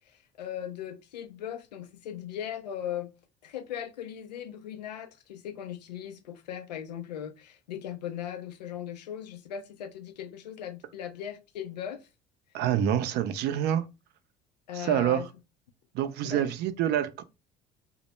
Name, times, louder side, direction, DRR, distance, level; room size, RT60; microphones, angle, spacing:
voice 1, 0.1-3.1 3.4-12.0 14.7-15.3 16.2-16.5, left 10 dB, 90° left, 0.4 m, -38 dB
voice 2, 12.5-13.8 14.7-15.2 15.9-17.2, right 10 dB, 55° right, 0.4 m, -27 dB
2.0 x 2.0 x 3.0 m
hypercardioid pair, 65°, 21 cm